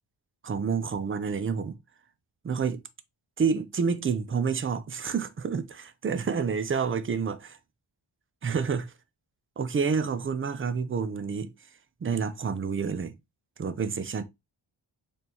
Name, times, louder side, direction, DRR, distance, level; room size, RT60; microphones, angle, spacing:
voice 1, 0.4-1.8 2.4-2.8 3.4-7.6 8.4-8.9 9.6-11.5 12.0-13.1 13.6-14.2, right 6 dB, 30° right, 0.4 m, -28 dB
4.3 x 3.3 x 2.8 m
wide cardioid pair, 165°, 47 cm